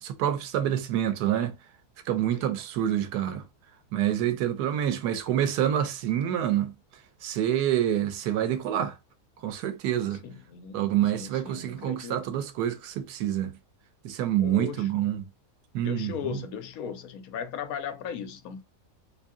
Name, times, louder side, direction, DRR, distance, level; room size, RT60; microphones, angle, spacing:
voice 1, 0.0-1.6 2.1-3.4 3.9-6.7 7.2-8.9 9.4-10.2 10.7-13.5 14.0-15.3 15.7-16.4, right 11 dB, 90° right, 1.2 m, -27 dB
voice 2, 10.1-12.3 14.4-15.1 15.8-18.6, left 7 dB, 70° left, 1.0 m, -37 dB
2.8 x 2.7 x 3.5 m
omnidirectional pair, 1.7 m